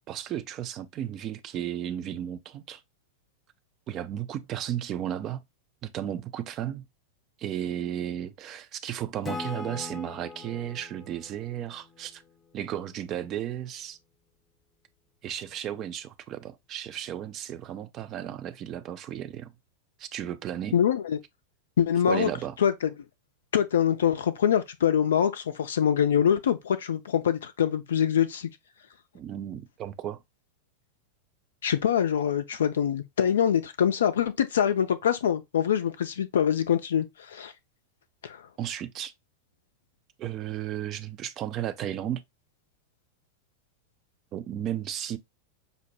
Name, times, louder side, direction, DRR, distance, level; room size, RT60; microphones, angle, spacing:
voice 1, 0.1-2.8 3.9-5.4 5.8-6.9 7.4-12.2 12.5-14.0 15.2-19.5 20.0-20.8 22.1-22.6 29.1-30.2 38.6-39.1 40.2-42.2 44.3-45.2, right 11 dB, 35° right, 0.5 m, -34 dB
Acoustic guitar / Strum, 9.2-12.8, left 3 dB, 20° left, 0.7 m, -41 dB
voice 2, 20.7-21.2 21.8-22.3 22.6-22.7 23.5-28.5 31.6-37.5 38.2-38.4, left 9 dB, 65° left, 0.4 m, -24 dB
5.4 x 2.1 x 3.0 m
figure-of-eight pair, 90°, 0 cm